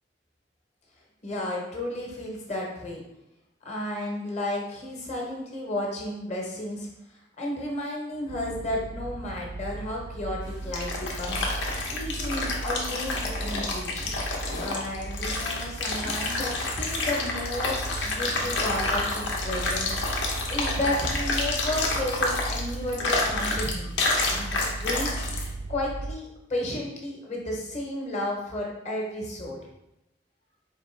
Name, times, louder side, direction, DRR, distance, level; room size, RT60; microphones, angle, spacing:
voice 1, 1.2-3.0 3.6-6.9 7.4-14.1 14.6-16.5 16.8-19.9 20.2-23.9 24.3-25.1 25.7-29.6, left 1 dB, 40° left, -2 dB, 0.9 m, -32 dB
sound 1, 8.3-26.1, right 2 dB, 65° right, 0.5 m, -36 dB
sound 2, 10.4-25.5, left 3 dB, 75° left, 0.8 m, -29 dB
4.2 x 3.1 x 3.2 m, 0.88 s
head